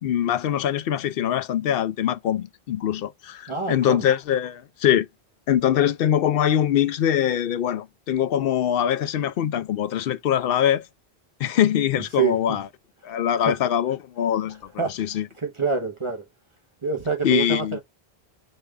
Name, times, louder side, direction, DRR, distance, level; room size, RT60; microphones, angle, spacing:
voice 1, 0.0-5.1 5.5-10.8 11.4-12.7 13.0-14.6 14.9-15.3 17.2-17.8, left 10 dB, 65° left, 0.7 m, -23 dB
voice 2, 3.5-4.1 12.2-12.6 13.4-13.5 14.8-14.9 15.4-16.2 16.8-17.8, right 6 dB, 30° right, 0.9 m, -26 dB
5.4 x 2.4 x 3.2 m
omnidirectional pair, 1.1 m